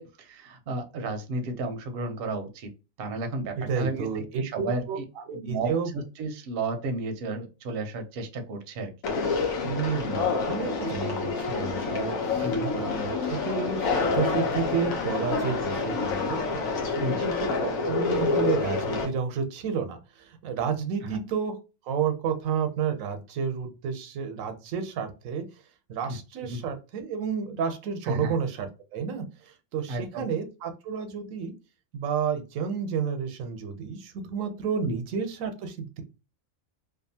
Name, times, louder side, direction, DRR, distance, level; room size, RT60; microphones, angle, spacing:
voice 1, 0.0-2.7 3.0-4.8 5.3-8.9 12.4-12.8 17.0-17.3 21.0-21.2 26.1-26.2 26.5-26.6 28.0-28.4 29.9-30.3, right 2 dB, 60° right, 5 dB, 0.7 m, -33 dB
voice 2, 3.6-5.9 9.6-16.4 16.9-21.6 21.8-25.4 25.9-31.5 31.9-36.0, right 6 dB, 90° right, 7 dB, 1.0 m, -31 dB
Conversation, 9.0-19.0, left 4 dB, 85° left, 1.1 m, -28 dB
2.6 x 2.3 x 2.7 m, 0.31 s
omnidirectional pair, 1.4 m